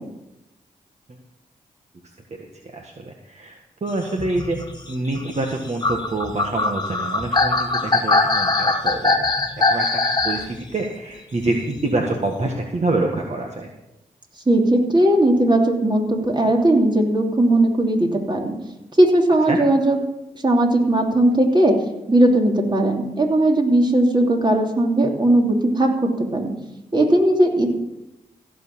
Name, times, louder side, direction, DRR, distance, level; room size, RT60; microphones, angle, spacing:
voice 1, 2.3-4.6 4.9-9.2 9.6-9.9 10.2-13.7 19.5-19.6, right 2 dB, 45° right, 1 dB, 1.7 m, -26 dB
sound 1, 4.1-10.5 11.7-11.8, left 3 dB, 30° left, 1.7 m, -21 dB
voice 2, 14.5-18.5 19.0-20.0 20.4-21.7 22.1-26.5 26.9-27.7, right 1 dB, 30° right, 1 dB, 3.0 m, -18 dB
15.5 x 6.6 x 7.3 m, 0.92 s
cardioid pair, 50°, 15 cm